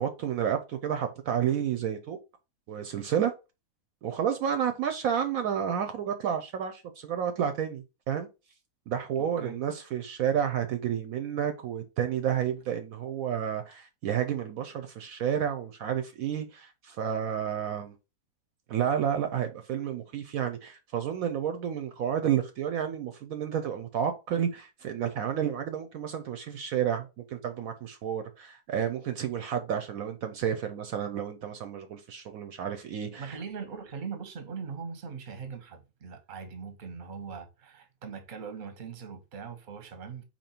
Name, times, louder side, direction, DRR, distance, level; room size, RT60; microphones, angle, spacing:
voice 1, 0.0-2.2 2.7-3.3 4.0-8.3 8.9-17.9 18.7-33.4, right 9 dB, 70° right, 1.0 m, -30 dB
voice 2, 9.2-9.6 33.2-40.2, right 6 dB, 40° right, 0.9 m, -41 dB
4.4 x 2.9 x 4.2 m
omnidirectional pair, 1.6 m